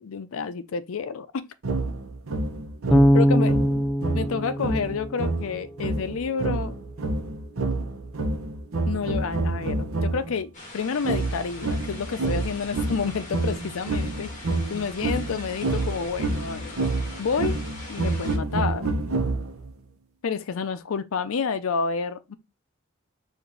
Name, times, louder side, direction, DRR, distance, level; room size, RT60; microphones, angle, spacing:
voice 1, 0.0-1.5 3.1-3.5 4.1-6.8 8.9-16.8 17.2-17.6 17.9-19.0 20.2-22.4, left 5 dB, 85° left, 0.5 m, -29 dB
sound 1, 1.6-10.4 11.0-19.7, right 2 dB, 85° right, 0.8 m, -28 dB
Bass guitar, 2.9-5.9, equal, 5° left, 0.5 m, -22 dB
sound 2, 10.5-18.4, left 2 dB, 35° left, 1.4 m, -42 dB
4.8 x 2.6 x 3.9 m
head